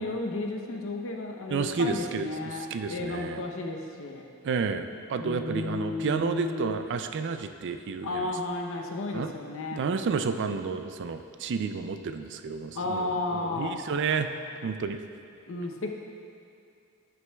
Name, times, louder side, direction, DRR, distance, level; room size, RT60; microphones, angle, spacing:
voice 1, 0.0-4.3 5.2-6.8 8.0-9.8 12.7-13.8 15.5-15.9, left 2 dB, 65° left, 2 dB, 0.7 m, -33 dB
voice 2, 1.5-3.4 4.4-8.3 9.1-9.3 9.7-14.3 14.6-15.0, right 5 dB, 55° right, 8 dB, 0.4 m, -31 dB
9.4 x 7.9 x 2.3 m, 2.5 s
head